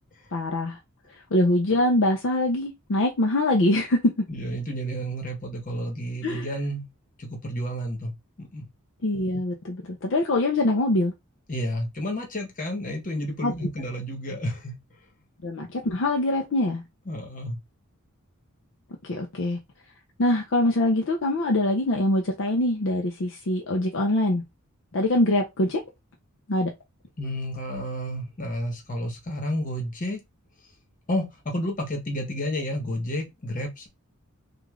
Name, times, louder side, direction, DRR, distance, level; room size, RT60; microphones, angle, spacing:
voice 1, 0.3-0.8 1.3-4.1 6.2-6.5 9.0-11.1 13.4-13.5 15.4-16.8 19.0-19.6 20.2-24.4 24.9-25.8 26.5-26.7, left 1 dB, 55° left, 0.6 m, -23 dB
voice 2, 4.3-6.9 7.2-8.1 8.4-8.7 11.5-14.8 17.1-17.6 27.2-30.2 31.1-33.9, equal, 35° left, 1.1 m, -31 dB
3.1 x 2.5 x 3.6 m
head